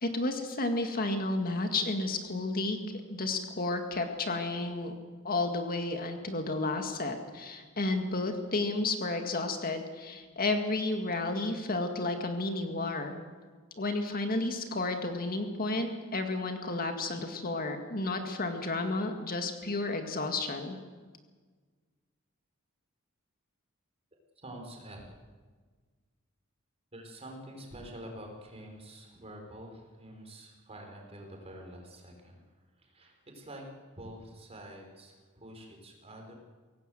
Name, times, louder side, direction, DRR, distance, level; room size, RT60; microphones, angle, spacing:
voice 1, 0.0-4.9 5.2-13.1 13.8-20.8, left 2 dB, 45° left, 5 dB, 2.1 m, -32 dB
voice 2, 24.4-25.1 26.9-33.7 33.9-36.3, right 1 dB, 30° right, 2 dB, 4.8 m, -47 dB
24.0 x 18.0 x 7.8 m, 1.5 s
head